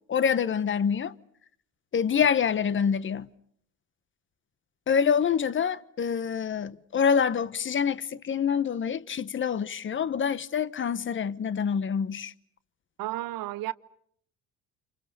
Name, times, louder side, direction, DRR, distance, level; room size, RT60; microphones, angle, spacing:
voice 1, 0.1-1.1 1.9-3.3 4.9-12.3, left 7 dB, 35° left, 1.1 m, -26 dB
voice 2, 13.0-13.7, right 16 dB, 75° right, 1.1 m, -32 dB
30.0 x 27.5 x 6.7 m
cardioid pair, 90°, 35 cm